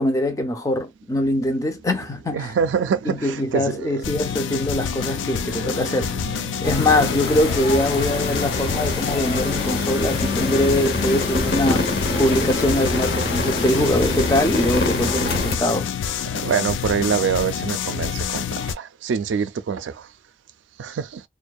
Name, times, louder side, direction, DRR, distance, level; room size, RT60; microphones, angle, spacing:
voice 1, 0.0-2.5 3.1-15.9, left 1 dB, 20° left, 0.4 m, -23 dB
voice 2, 2.3-4.0 4.5-4.6 4.9-7.0 16.3-20.1 20.8-21.2, right 6 dB, 85° right, 0.3 m, -26 dB
sound 1, 4.0-18.7, left 8 dB, 85° left, 0.3 m, -28 dB
sound 2, 6.6-15.6, left 2 dB, 60° left, 0.7 m, -25 dB
2.6 x 2.1 x 2.2 m
head